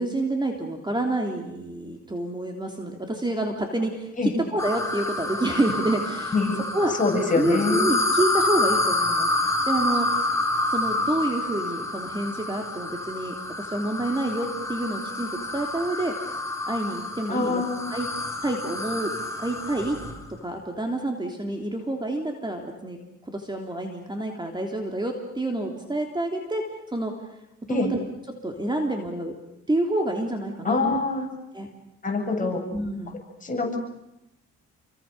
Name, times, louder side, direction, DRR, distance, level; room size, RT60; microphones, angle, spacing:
voice 1, 0.0-6.3 6.7-6.9 7.3-9.3 9.6-10.1 10.7-16.1 16.7-17.6 17.9-18.1 18.4-19.1 19.4-20.0 20.3-23.0 23.3-26.7 26.9-27.1 27.7-28.0 28.4-29.3 29.7-31.0 31.5-31.7 32.7-33.2, right 1 dB, 15° right, 3 dB, 3.3 m, -28 dB
sound 1, 4.6-20.2, left 2 dB, 10° left, 4.2 m, -28 dB
voice 2, 7.0-7.8 17.3-17.8 27.7-27.9 30.6-31.3 32.0-32.6 33.4-33.8, left 3 dB, 25° left, 1 dB, 8.0 m, -24 dB
29.0 x 24.5 x 6.8 m, 0.89 s
cardioid pair, 90°, 30 cm